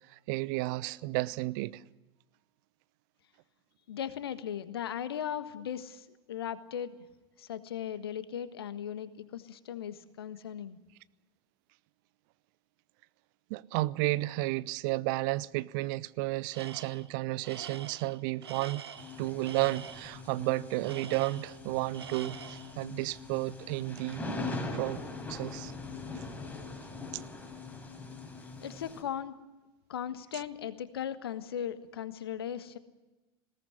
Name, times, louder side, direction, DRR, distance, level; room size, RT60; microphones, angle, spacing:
voice 1, 0.1-1.8 13.5-18.8 19.2-24.3 24.7-25.0 25.3-25.7 27.1-27.2, right 20 dB, 50° right, 0.7 m, -32 dB
voice 2, 3.9-7.0 7.4-10.8 28.6-29.3 29.9-32.8, left 9 dB, 65° left, 1.5 m, -38 dB
Tools, 16.5-17.1 17.4-20.2 20.8-21.7 21.9-22.8, right 7 dB, 75° right, 1.2 m, -45 dB
sound 1, 19.0-29.0, left 3 dB, 10° left, 5.4 m, -42 dB
20.5 x 18.0 x 9.8 m
figure-of-eight pair, 80°, 13 cm